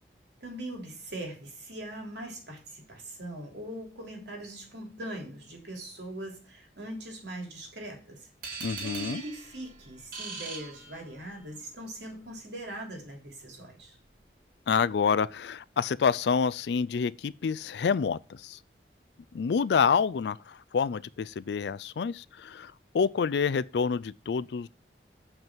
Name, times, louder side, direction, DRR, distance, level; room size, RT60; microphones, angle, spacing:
voice 1, 0.4-8.3 8.8-14.0, right 1 dB, 85° right, 3.1 m, -41 dB
sound 1, 8.4-11.4, right 4 dB, 50° right, 2.5 m, -41 dB
voice 2, 8.6-9.2 14.7-18.6 19.3-24.7, left 6 dB, 75° left, 0.4 m, -28 dB
7.3 x 5.6 x 6.0 m
head